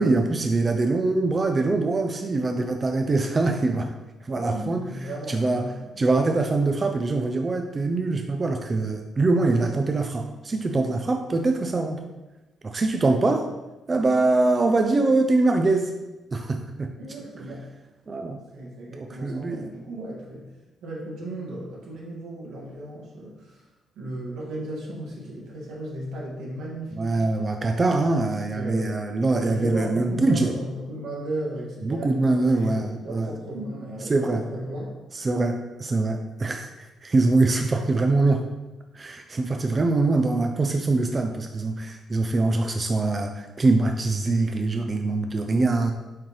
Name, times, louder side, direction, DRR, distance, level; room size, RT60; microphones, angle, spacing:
voice 1, 0.0-3.9 4.2-4.8 5.3-5.6 6.0-12.0 12.6-13.5 13.9-15.9 16.3-16.9 18.1-18.4 19.0-19.7 26.9-30.5 31.8-33.3 34.1-34.4 35.1-38.5 38.9-45.9, right 3 dB, 25° right, 4 dB, 0.4 m, -23 dB
voice 2, 4.3-6.0 8.8-8.9 9.7-9.8 17.0-17.7 18.5-20.5 20.8-23.7 24.0-27.2 28.5-28.8 29.4-34.9, right 1 dB, 85° right, -4 dB, 1.9 m, -35 dB
8.7 x 3.8 x 3.2 m, 1.1 s
cardioid pair, 140°, 0 cm